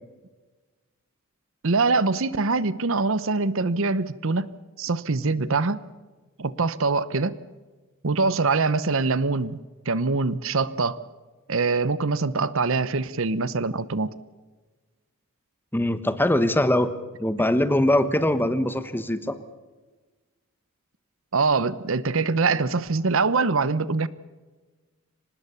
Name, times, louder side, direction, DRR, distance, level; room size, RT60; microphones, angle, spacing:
voice 1, 1.6-4.5 4.8-5.8 6.4-7.3 8.0-9.6 9.9-11.0 11.5-14.1 21.3-24.1, right 4 dB, 65° right, 0.8 m, -23 dB
voice 2, 15.7-16.9 17.2-19.4, left 1 dB, 10° left, 1.2 m, -22 dB
24.5 x 20.0 x 7.1 m
head